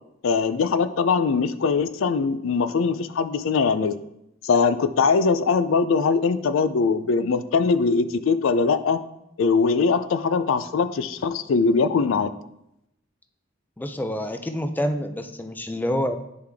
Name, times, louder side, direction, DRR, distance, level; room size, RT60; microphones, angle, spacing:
voice 1, 0.2-4.0 4.4-9.0 9.4-12.3, left 5 dB, 75° left, 12 dB, 0.4 m, -21 dB
voice 2, 13.8-16.2, equal, 10° left, 7 dB, 0.4 m, -27 dB
9.1 x 4.8 x 3.5 m, 0.82 s
head